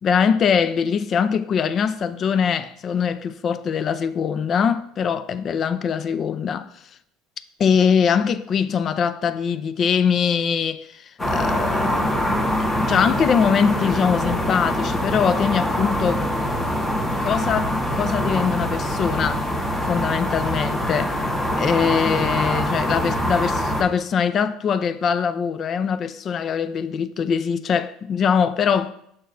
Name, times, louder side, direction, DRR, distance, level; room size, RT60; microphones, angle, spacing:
voice 1, 0.0-6.7 7.6-12.3 12.8-16.2 17.2-19.4 19.8-21.2 21.6-28.9, left 7 dB, 40° left, 0.4 m, -22 dB
sound 1, 11.2-23.8, equal, 20° left, 1.2 m, -24 dB
6.8 x 5.4 x 2.6 m
supercardioid pair, 105°, 0 cm